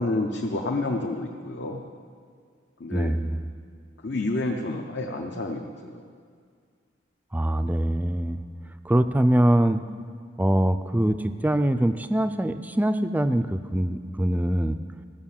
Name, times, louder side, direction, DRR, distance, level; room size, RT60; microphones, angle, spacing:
voice 1, 0.0-1.8 2.8-3.1 4.0-6.1 9.3-9.5, left 2 dB, 65° left, 1 dB, 0.8 m, -29 dB
voice 2, 2.9-3.4 7.3-8.4 8.8-9.8 10.4-14.8, right 1 dB, 10° right, 10 dB, 0.3 m, -23 dB
15.5 x 6.6 x 7.2 m, 2.1 s
head